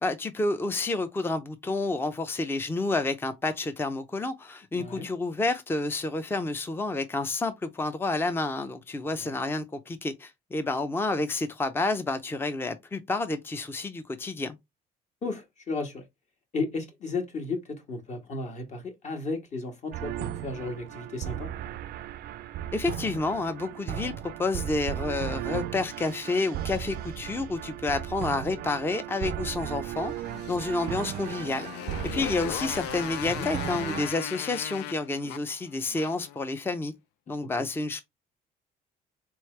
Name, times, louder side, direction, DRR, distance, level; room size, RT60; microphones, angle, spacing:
voice 1, 0.0-14.6 22.7-30.1 30.5-31.7 32.0-36.9 37.3-38.0, left 3 dB, 15° left, 0.5 m, -29 dB
voice 2, 4.7-5.1 9.1-9.3 15.2-16.0 16.5-21.5 33.2-33.5 37.3-37.6, left 3 dB, 45° left, 1.5 m, -34 dB
sound 1, 19.9-34.1, right 11 dB, 65° right, 0.4 m, -36 dB
Motorcycle, 30.0-36.4, left 12 dB, 90° left, 0.4 m, -38 dB
3.9 x 3.1 x 3.2 m
cardioid pair, 110°, 17 cm